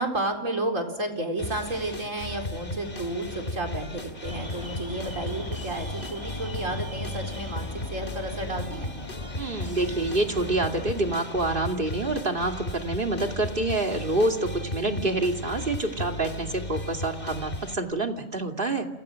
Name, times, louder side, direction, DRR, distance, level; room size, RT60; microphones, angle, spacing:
voice 1, 0.0-8.9 14.8-15.0, right 2 dB, 80° right, 3 dB, 4.8 m, -32 dB
sound 1, 1.4-17.7, left 1 dB, 45° left, 2.8 m, -36 dB
Alarm, 4.3-11.2, left 1 dB, 20° left, 2.1 m, -40 dB
voice 2, 9.4-18.9, right 2 dB, 40° right, 3 dB, 2.7 m, -27 dB
30.0 x 29.0 x 6.4 m, 0.95 s
omnidirectional pair, 1.3 m